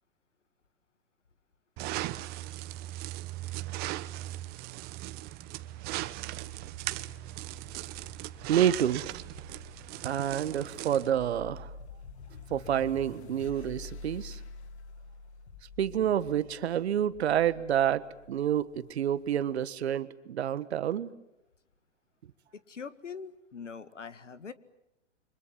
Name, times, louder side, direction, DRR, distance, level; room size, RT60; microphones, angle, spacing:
sound 1, 1.8-11.1, right 16 dB, 25° right, 1.0 m, -38 dB
sound 2, 6.2-19.3, left 4 dB, 65° left, 2.2 m, -49 dB
voice 1, 8.5-9.1 10.0-11.7 12.5-14.4 15.8-21.1, right 10 dB, 60° right, 14 dB, 1.5 m, -28 dB
voice 2, 22.5-24.5, left 6 dB, 85° left, 13 dB, 1.9 m, -43 dB
29.0 x 25.0 x 7.6 m, 0.89 s
hypercardioid pair, 125°, 36 cm